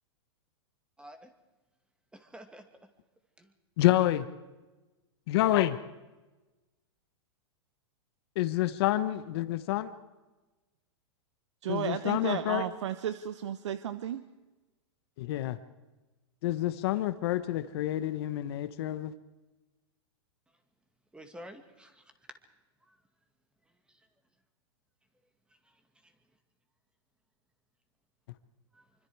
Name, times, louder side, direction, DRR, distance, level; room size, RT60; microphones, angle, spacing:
voice 1, 1.0-1.3 2.1-2.9 3.4-3.5 21.1-22.1 22.8-23.0 23.9-24.1 25.5-26.1 28.7-28.8, equal, 5° right, 2.2 m, -51 dB
voice 2, 3.8-4.2 5.3-5.8 8.4-9.9 11.7-12.6 15.2-15.6 16.4-19.1, left 14 dB, 55° left, 1.3 m, -28 dB
voice 3, 11.6-14.2, right 10 dB, 75° right, 1.1 m, -33 dB
25.5 x 25.0 x 4.8 m
hypercardioid pair, 130°, 15 cm